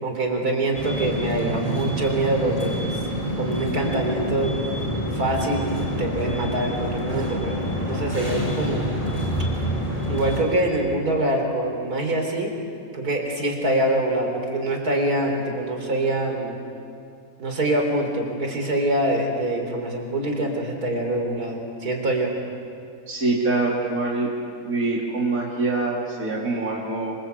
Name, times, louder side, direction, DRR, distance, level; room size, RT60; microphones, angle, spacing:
voice 1, 0.0-3.0 3.4-4.5 5.1-8.8 10.1-12.5 12.9-16.6 17.4-22.3, right 1 dB, 80° right, 2 dB, 4.2 m, -25 dB
sound 1, 0.7-10.4, equal, 25° left, 4.7 m, -27 dB
voice 2, 23.1-24.3 24.6-27.1, right 3 dB, 65° right, -3 dB, 3.5 m, -24 dB
26.5 x 26.0 x 8.2 m, 2.4 s
omnidirectional pair, 1.6 m